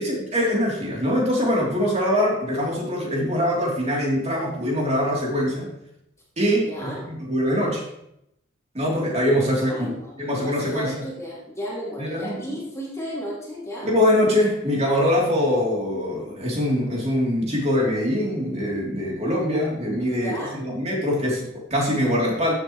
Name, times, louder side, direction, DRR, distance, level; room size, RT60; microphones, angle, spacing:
voice 1, 0.0-5.7 6.4-7.8 8.7-10.9 12.0-12.6 13.8-22.5, equal, 35° right, -3 dB, 3.2 m, -23 dB
voice 2, 6.7-7.0 9.7-13.9 20.1-20.6, equal, 15° left, -5 dB, 2.5 m, -33 dB
14.0 x 7.8 x 3.1 m, 0.79 s
head